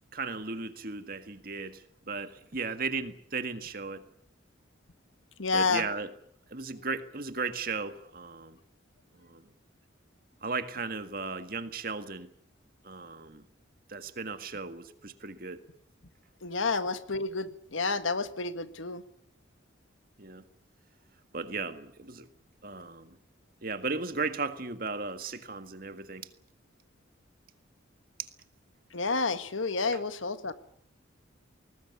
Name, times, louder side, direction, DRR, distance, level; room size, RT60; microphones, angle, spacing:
voice 1, 0.1-4.0 5.5-6.1 6.5-8.6 9.2-9.4 10.4-12.3 12.8-13.4 13.9-15.6 20.2-20.4 21.3-22.3 22.6-23.2 23.6-26.3 28.2-28.3 29.9-30.0, right 4 dB, 45° right, 9 dB, 1.8 m, -36 dB
voice 2, 5.4-5.8 16.4-19.0 28.9-30.5, left 4 dB, 85° left, 11 dB, 1.6 m, -30 dB
21.5 x 19.5 x 9.6 m, 0.66 s
head